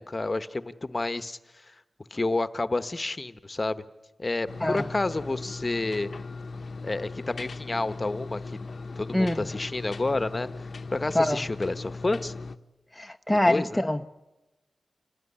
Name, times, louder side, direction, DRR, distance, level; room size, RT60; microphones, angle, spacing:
voice 1, 0.1-1.4 1.7-1.8 2.1-3.8 4.2-6.1 6.8-8.4 9.0-10.5 10.9-12.3 13.5-13.8, left 2 dB, 30° left, 12 dB, 1.1 m, -29 dB
sound 1, 4.5-12.6, left 3 dB, 55° left, 0.8 m, -38 dB
voice 2, 12.9-14.0, left 1 dB, 10° left, 5 dB, 0.8 m, -24 dB
28.5 x 18.5 x 10.0 m, 1.1 s
wide cardioid pair, 80°, 0 cm